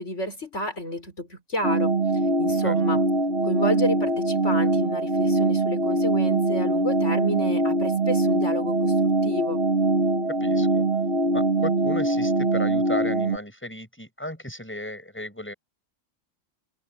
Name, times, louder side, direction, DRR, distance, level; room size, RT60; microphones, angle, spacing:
voice 1, 0.0-1.9 2.4-3.0 3.4-9.6, left 1 dB, 65° left, 5.7 m, -30 dB
sound 1, 1.6-13.4, right 2 dB, 55° right, 2.8 m, -23 dB
voice 2, 10.4-10.8 11.3-15.5, left 1 dB, 10° left, 7.7 m, -34 dB
omnidirectional pair, 1.3 m